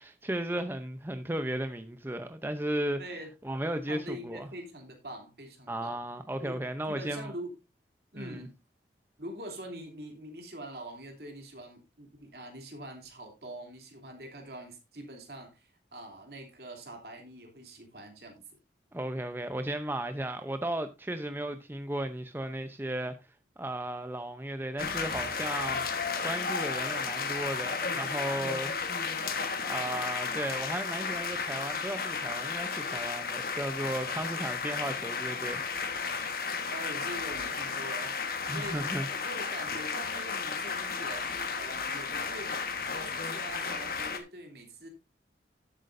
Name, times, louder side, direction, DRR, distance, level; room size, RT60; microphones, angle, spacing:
voice 1, 0.0-3.0 3.4-4.5 5.7-7.3 8.1-8.5 18.9-23.2 23.6-25.9 26.2-28.7 29.6-35.6 38.5-39.1, right 1 dB, 10° right, 0.6 m, -35 dB
voice 2, 3.0-3.3 3.9-6.0 6.4-6.6 6.9-7.6 8.1-8.5 9.2-18.4 36.7-38.2 38.5-44.9, right 1 dB, 60° right, 3.0 m, -44 dB
sound 1, 24.8-44.2, left 5 dB, 55° left, 1.4 m, -33 dB
13.0 x 8.2 x 2.6 m
head